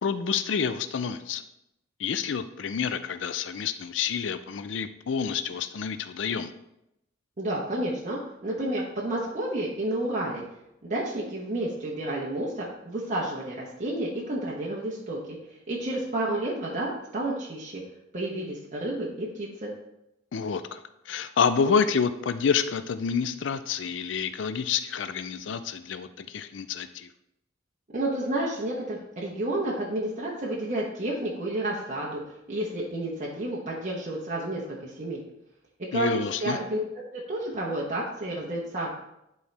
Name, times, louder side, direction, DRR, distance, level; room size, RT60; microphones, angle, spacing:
voice 1, 0.0-1.4 2.0-6.5 20.3-27.1 35.9-36.6, left 6 dB, 75° left, 12 dB, 0.4 m, -28 dB
voice 2, 7.4-10.4 10.8-15.4 15.7-17.8 18.1-19.7 27.9-35.2 35.8-36.8 37.1-38.9, right 1 dB, 40° right, -5 dB, 1.1 m, -30 dB
11.0 x 4.6 x 3.4 m, 0.85 s
head